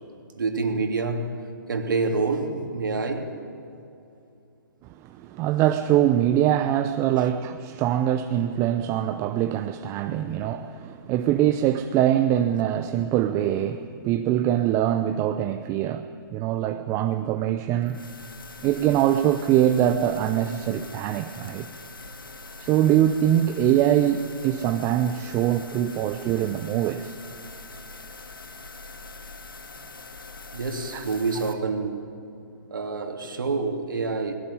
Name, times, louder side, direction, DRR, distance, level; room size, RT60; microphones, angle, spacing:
voice 1, 0.4-1.3 1.7-3.3 10.2-10.3 30.5-32.0 32.7-34.3, right 4 dB, 65° right, 4 dB, 2.9 m, -27 dB
voice 2, 5.0-18.0 18.6-21.7 22.6-27.1 30.9-31.0, right 11 dB, 25° right, 9 dB, 0.7 m, -23 dB
sound 1, 17.8-31.5, left 3 dB, 75° left, 2.1 m, -43 dB
20.5 x 17.5 x 9.8 m, 2.6 s
figure-of-eight pair, 125°, 12 cm